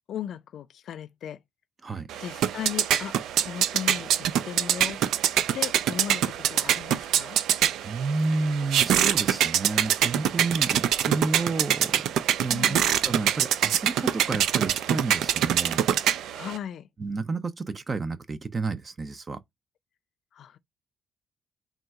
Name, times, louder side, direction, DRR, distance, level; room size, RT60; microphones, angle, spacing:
voice 1, 0.1-1.4 2.2-5.0 5.5-7.4 12.5-12.9 16.3-16.9 20.3-20.6, left 10 dB, 65° left, 0.4 m, -37 dB
sound 1, 2.1-16.6, right 10 dB, 80° right, 0.3 m, -25 dB
voice 2, 7.8-12.1 12.4-12.8 13.0-16.2 17.0-19.4, right 3 dB, 35° right, 0.6 m, -31 dB
3.8 x 2.4 x 4.6 m
cardioid pair, 90°, 0 cm